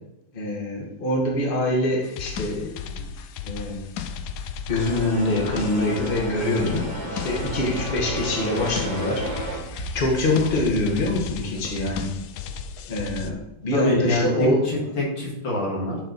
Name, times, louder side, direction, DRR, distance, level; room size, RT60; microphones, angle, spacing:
voice 1, 0.3-3.1 3.4-3.8 4.7-12.1 12.9-14.8, left 1 dB, 30° left, -1 dB, 1.4 m, -25 dB
sound 1, 2.0-13.3, left 6 dB, 70° left, 1.0 m, -35 dB
sound 2, 4.8-9.6, right 2 dB, 30° right, 1.0 m, -32 dB
voice 2, 13.7-16.0, left 1 dB, 90° left, -3 dB, 2.6 m, -25 dB
10.5 x 4.3 x 4.1 m, 0.87 s
omnidirectional pair, 2.0 m